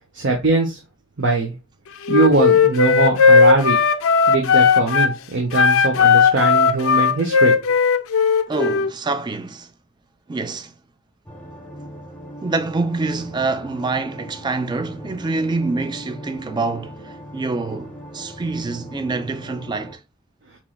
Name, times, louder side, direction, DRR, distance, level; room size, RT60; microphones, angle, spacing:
voice 1, 0.1-0.8 1.2-1.5 2.1-3.8 4.3-7.6, right 3 dB, 55° right, 0.8 m, -21 dB
Wind instrument woodwind instrument, 2.1-5.1 5.5-8.9, left 5 dB, 70° left, 0.4 m, -16 dB
voice 2, 8.5-9.7 10.3-10.7 12.4-20.0, right 3 dB, 20° right, 0.3 m, -26 dB
sound 1, 11.3-20.0, equal, 5° left, 0.7 m, -39 dB
4.6 x 3.0 x 2.3 m
head